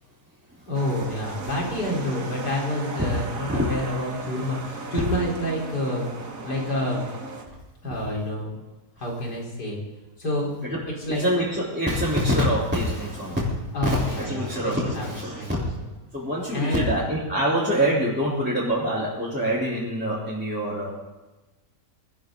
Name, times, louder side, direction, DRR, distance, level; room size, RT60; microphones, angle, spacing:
voice 1, 0.7-6.1 6.4-7.1 7.8-8.6 9.0-9.8 10.2-10.5 11.0-11.2 13.7-15.5 16.5-16.9, left 1 dB, 75° left, -2 dB, 4.8 m, -28 dB
sound 1, 0.7-7.4, right 3 dB, 55° right, 2.1 m, -36 dB
voice 2, 11.1-13.5 13.8-15.6 16.1-20.9, equal, 5° right, -9 dB, 3.6 m, -25 dB
22.5 x 14.5 x 3.9 m, 1.1 s
omnidirectional pair, 1.8 m